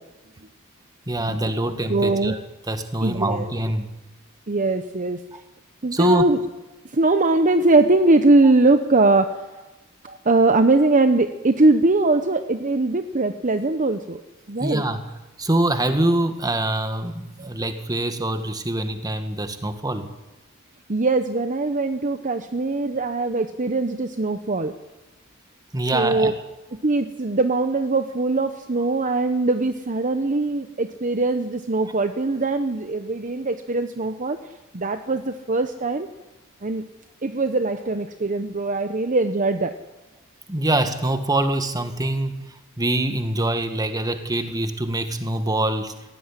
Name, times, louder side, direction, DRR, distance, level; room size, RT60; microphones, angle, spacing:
voice 1, 1.1-2.4 2.7-3.9 5.3-5.4 5.9-6.2 14.6-20.1 25.7-26.3 40.5-42.4 42.8-45.9, right 1 dB, 20° right, 8 dB, 1.7 m, -24 dB
voice 2, 1.9-2.3 3.0-3.5 4.5-5.2 5.8-6.4 6.9-9.3 10.0-14.2 14.5-14.8 17.4-17.5 20.9-24.7 25.9-26.3 26.8-34.4 34.7-36.1 36.6-36.8 37.2-39.7, right 2 dB, 35° right, 9 dB, 0.9 m, -21 dB
19.0 x 16.5 x 9.9 m, 1.1 s
head